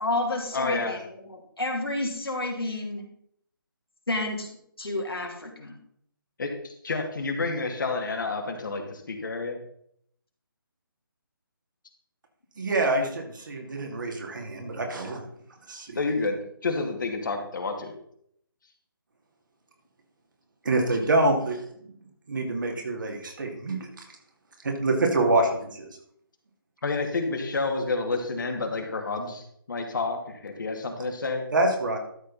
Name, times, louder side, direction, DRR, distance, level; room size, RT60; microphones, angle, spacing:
voice 1, 0.0-3.0 4.1-4.5 4.8-5.8, left 2 dB, 85° left, 0 dB, 3.1 m, -30 dB
voice 2, 0.5-1.0 6.4-9.6 15.9-17.9 26.8-31.4, left 3 dB, 55° left, 3 dB, 2.2 m, -29 dB
voice 3, 12.6-15.3 15.7-16.0 20.6-21.6 22.3-23.9 24.6-25.5 31.5-32.0, right 2 dB, 60° right, 2 dB, 2.5 m, -25 dB
12.5 x 6.7 x 4.1 m, 0.68 s
figure-of-eight pair, 150°, 12 cm